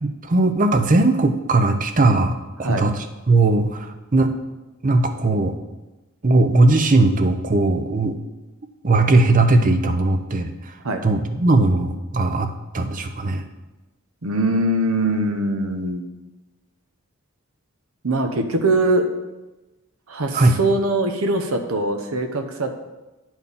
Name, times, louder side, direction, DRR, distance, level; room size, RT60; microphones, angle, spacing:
voice 1, 0.0-4.3 4.8-5.5 6.2-8.2 8.8-10.7 11.0-13.4 20.3-20.6, right 2 dB, 35° right, 7 dB, 0.6 m, -18 dB
voice 2, 14.2-16.1 18.0-19.1 20.1-22.7, right 2 dB, 70° right, 6 dB, 0.9 m, -22 dB
9.7 x 4.6 x 5.4 m, 1.1 s
head